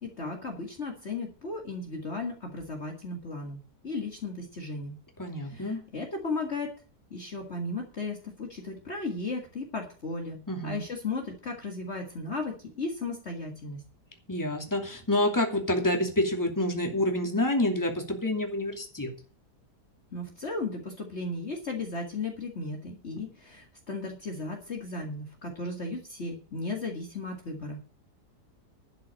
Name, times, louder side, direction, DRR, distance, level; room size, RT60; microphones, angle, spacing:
voice 1, 0.0-3.6 3.8-5.0 5.4-6.7 7.1-13.8 20.1-27.8, left 3 dB, 40° left, 2 dB, 2.0 m, -35 dB
voice 2, 5.2-5.8 10.5-10.8 14.3-19.1, left 1 dB, 10° left, 3 dB, 2.6 m, -28 dB
12.0 x 6.1 x 8.6 m, 0.39 s
omnidirectional pair, 1.8 m